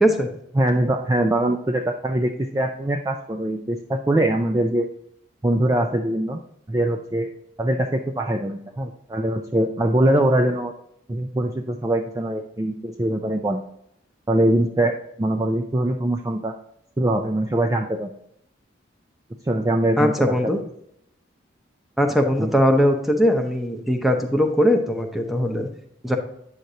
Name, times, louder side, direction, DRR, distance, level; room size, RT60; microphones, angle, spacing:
voice 1, 0.5-4.9 5.4-6.4 6.7-7.3 7.6-10.7 11.1-13.6 14.3-16.6 17.0-18.1 19.4-20.5 22.4-22.5, right 1 dB, 20° right, 4 dB, 0.4 m, -22 dB
voice 2, 20.0-20.6 22.0-25.7 26.0-26.2, equal, ahead, 4 dB, 0.7 m, -20 dB
8.9 x 6.5 x 2.8 m, 0.74 s
head